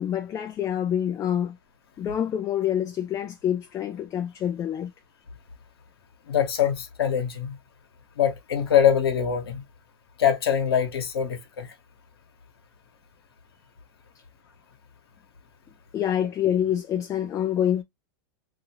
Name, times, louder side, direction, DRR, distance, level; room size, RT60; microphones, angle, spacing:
voice 1, 0.0-1.6 2.0-4.9 15.9-17.8, left 10 dB, 25° left, 0.4 m, -26 dB
voice 2, 6.3-7.6 8.2-9.6 10.2-11.7, left 8 dB, 90° left, 1.1 m, -23 dB
2.8 x 2.5 x 2.8 m
hypercardioid pair, 115°, 13 cm